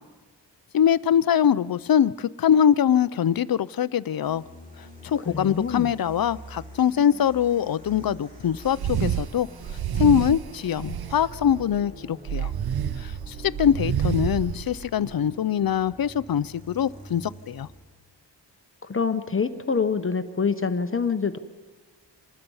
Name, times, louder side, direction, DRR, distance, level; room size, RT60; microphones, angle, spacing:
voice 1, 0.7-4.4 5.0-9.5 9.9-12.5 13.0-17.7, left 9 dB, 55° left, 17 dB, 0.6 m, -23 dB
sound 1, 4.2-17.9, equal, 20° right, 5.8 m, -46 dB
voice 2, 5.3-5.9 18.8-21.4, left 5 dB, 30° left, 9 dB, 0.8 m, -26 dB
sound 2, 8.6-9.3 9.6-11.8 12.3-15.1, right 9 dB, 60° right, 0.6 m, -29 dB
27.0 x 20.0 x 5.5 m, 1.4 s
wide cardioid pair, 140°, 43 cm